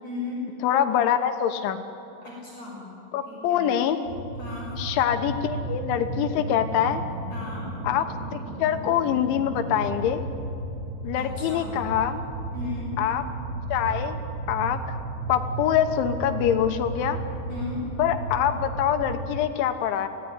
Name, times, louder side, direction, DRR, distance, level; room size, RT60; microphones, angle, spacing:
voice 1, 0.0-0.4 2.2-2.9 3.3-3.7 4.4-4.7 7.3-7.7 11.1-11.7 12.5-13.0 17.5-17.8, left 3 dB, 35° left, -4 dB, 7.2 m, -36 dB
voice 2, 0.6-1.8 3.1-4.0 4.8-7.0 7.8-10.2 11.0-12.2 13.0-13.2 13.7-14.2 14.5-14.8 15.3-17.2 18.0-20.1, left 10 dB, 85° left, 8 dB, 3.6 m, -24 dB
sound 1, 4.0-19.5, right 2 dB, 80° right, 4.8 m, -34 dB
27.5 x 18.0 x 9.7 m, 2.7 s
omnidirectional pair, 5.3 m